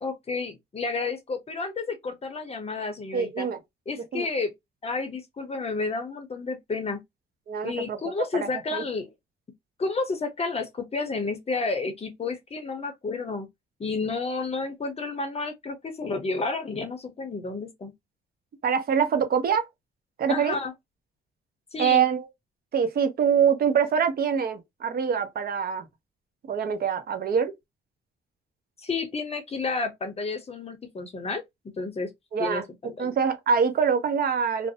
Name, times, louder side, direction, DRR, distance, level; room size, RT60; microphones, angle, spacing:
voice 1, 0.0-3.5 3.9-4.5 4.8-7.0 7.6-9.1 9.8-13.5 13.8-17.9 20.3-20.7 21.7-22.0 28.8-31.4 31.8-32.1 32.4-33.1, left 4 dB, 30° left, 0.7 m, -31 dB
voice 2, 3.1-3.6 4.1-4.3 7.5-8.8 18.6-19.6 20.2-20.6 21.8-22.3 22.7-25.9 26.5-27.5 32.3-32.6 33.0-34.7, right 7 dB, 50° right, 0.6 m, -24 dB
2.4 x 2.1 x 2.6 m
cardioid pair, 90°, 20 cm